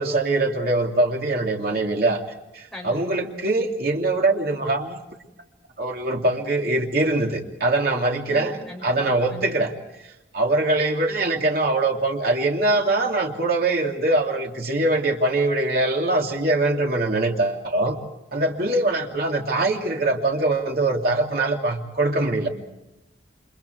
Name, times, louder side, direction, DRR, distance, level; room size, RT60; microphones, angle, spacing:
voice 1, 0.0-2.2 2.5-5.0 5.8-9.7 10.3-18.0 18.3-22.5, right 2 dB, 55° right, 0 dB, 2.9 m, -23 dB
voice 2, 2.7-3.0 8.3-8.9 9.3-9.5, left 1 dB, ahead, -2 dB, 6.9 m, -39 dB
30.0 x 26.5 x 4.8 m, 0.94 s
head